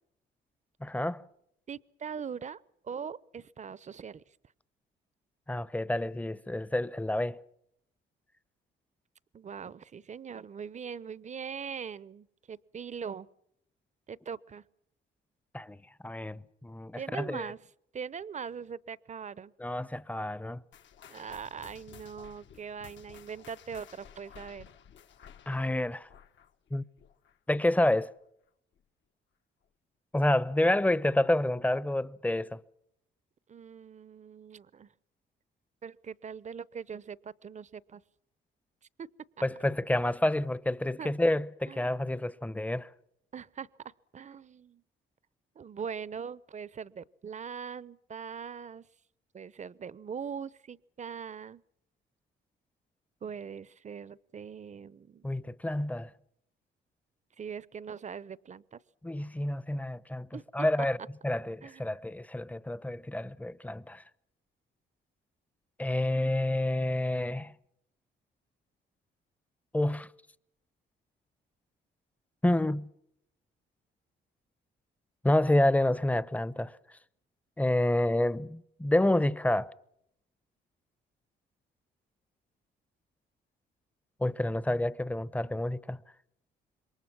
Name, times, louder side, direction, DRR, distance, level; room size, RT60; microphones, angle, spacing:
voice 1, 0.8-1.2 5.5-7.4 15.5-17.5 19.6-20.6 25.5-26.1 26.7-26.8 27.5-28.1 30.1-32.6 39.4-42.9 55.2-56.1 59.0-60.3 60.5-61.0 61.2-64.0 65.8-67.5 69.7-70.1 72.4-72.9 75.2-76.8 77.6-79.7 84.2-86.0, left 1 dB, 5° left, 0.8 m, -28 dB
voice 2, 1.7-4.2 9.3-13.3 14.1-14.6 16.9-17.6 17.9-19.5 21.1-24.7 33.5-34.9 35.8-38.0 39.0-39.1 41.0-41.1 41.7-42.2 43.3-44.8 45.5-48.9 49.3-51.6 53.2-55.5 57.4-58.8 60.3-60.5 60.8-60.9 61.6-61.8, right 7 dB, 35° right, 0.8 m, -41 dB
sound 1, 20.7-27.6 27.8-28.2 28.8-28.9 29.6-29.7, left 8 dB, 70° left, 1.5 m, -54 dB
27.0 x 23.0 x 6.2 m
cardioid pair, 90°, 20 cm